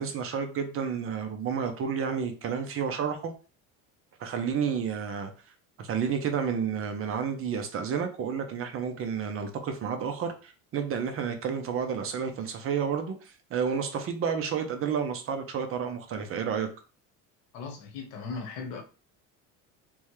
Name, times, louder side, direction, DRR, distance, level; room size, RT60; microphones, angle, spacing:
voice 1, 0.0-3.3 4.2-5.3 5.8-16.7, right 7 dB, 40° right, 0.7 m, -30 dB
voice 2, 17.5-18.8, left 4 dB, 80° left, 1.1 m, -37 dB
3.5 x 3.3 x 3.1 m
cardioid pair, 140°, 35 cm